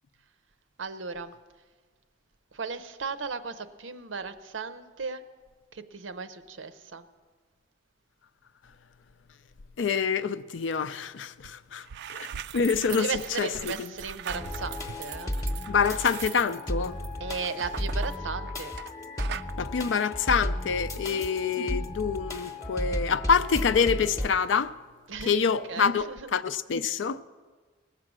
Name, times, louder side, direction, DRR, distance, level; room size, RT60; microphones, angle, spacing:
voice 1, 0.8-1.3 2.5-5.2 5.7-7.0 12.9-15.3 17.2-18.7 20.9-21.2 25.1-25.4 25.7-26.3, right 5 dB, 90° right, 0.7 m, -36 dB
voice 2, 9.8-13.1 13.4-13.9 15.7-17.0 19.6-24.8 25.2-27.2, left 6 dB, 75° left, 0.4 m, -26 dB
sound 1, 11.4-11.5 11.8-18.9 19.2-19.5, right 9 dB, 60° right, 0.3 m, -40 dB
sound 2, 14.3-24.3, left 1 dB, 15° left, 0.8 m, -34 dB
19.5 x 7.6 x 6.1 m
head